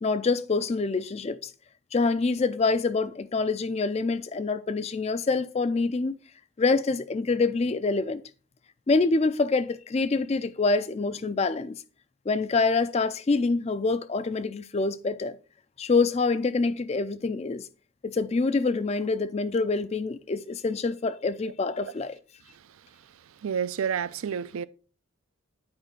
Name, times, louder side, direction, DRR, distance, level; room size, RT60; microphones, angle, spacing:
voice 1, 0.0-1.5 1.9-6.2 6.6-8.2 8.9-11.8 12.3-15.4 15.8-17.7 18.0-22.2, left 3 dB, 30° left, 0.3 m, -26 dB
voice 2, 23.4-24.7, right 7 dB, 75° right, 0.4 m, -30 dB
8.8 x 4.9 x 3.7 m
head